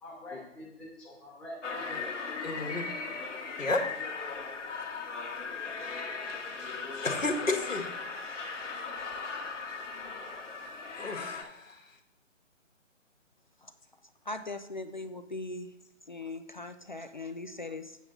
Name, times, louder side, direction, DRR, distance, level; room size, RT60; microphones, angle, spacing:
voice 1, 0.0-2.1 2.4-2.5, left 1 dB, ahead, -7 dB, 0.7 m, -45 dB
sound 1, 1.6-11.4, left 4 dB, 65° left, 1.6 m, -38 dB
voice 2, 2.4-2.8 3.6-3.8 7.0-7.8 11.0-11.8, left 3 dB, 85° left, 2 dB, 1.8 m, -31 dB
voice 3, 14.0-15.7 16.1-18.0, left 2 dB, 40° left, 9 dB, 0.4 m, -40 dB
8.1 x 7.4 x 3.9 m, 0.86 s
figure-of-eight pair, 150°, 38 cm